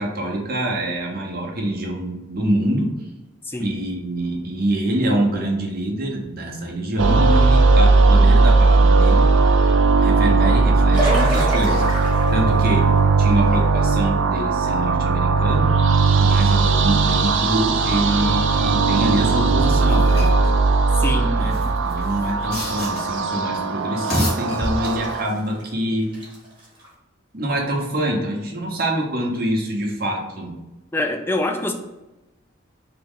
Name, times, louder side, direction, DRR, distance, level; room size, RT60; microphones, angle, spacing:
voice 1, 0.0-2.9 3.6-9.3 10.0-12.9 13.2-15.7 16.2-20.3 21.2-21.5 21.8-26.1 27.3-30.5, right 1 dB, 45° right, 0.8 m, -25 dB
sound 1, 7.0-25.3, right 3 dB, 65° right, 0.4 m, -17 dB
sound 2, 10.9-14.1 14.6-14.7 18.3-18.4 19.3-19.4 21.3-21.4 21.8-21.9 22.5-23.2 23.7-23.8 24.8-25.7 26.0-26.9, right 1 dB, 25° right, 1.2 m, -29 dB
sound 3, 19.5-20.5 21.4-23.2 23.9-25.2, equal, 45° left, 1.3 m, -29 dB
voice 2, 21.0-21.4 30.9-31.7, left 1 dB, 10° left, 0.3 m, -24 dB
3.1 x 2.9 x 3.7 m
head